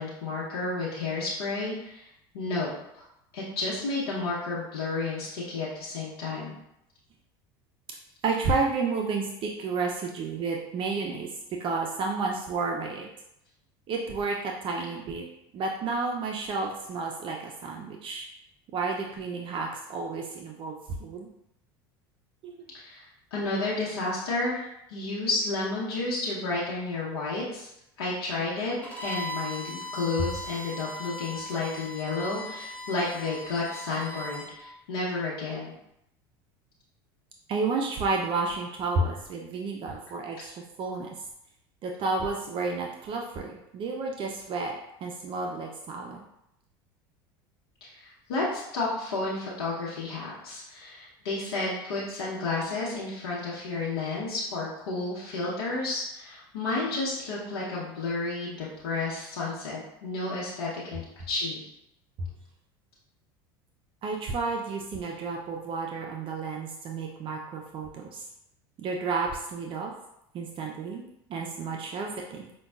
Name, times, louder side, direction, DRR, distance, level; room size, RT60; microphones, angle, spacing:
voice 1, 0.0-2.1 2.3-2.7 3.3-6.5 22.7-24.6 24.9-27.7 28.0-28.8 29.0-35.7 47.8-61.0 61.3-61.6, left 3 dB, 85° left, -6 dB, 0.8 m, -31 dB
voice 2, 8.2-11.3 11.6-13.1 13.9-15.2 15.5-18.3 18.7-21.3 22.4-22.5 37.5-41.1 41.8-44.7 45.0-46.2 64.0-68.2 68.8-69.9 70.3-71.0 71.3-72.5, right 4 dB, 45° right, 1 dB, 0.5 m, -31 dB
Bowed string instrument, 28.8-34.5, equal, 15° left, 1.2 m, -38 dB
5.1 x 2.2 x 2.3 m, 0.81 s
hypercardioid pair, 90°, 13 cm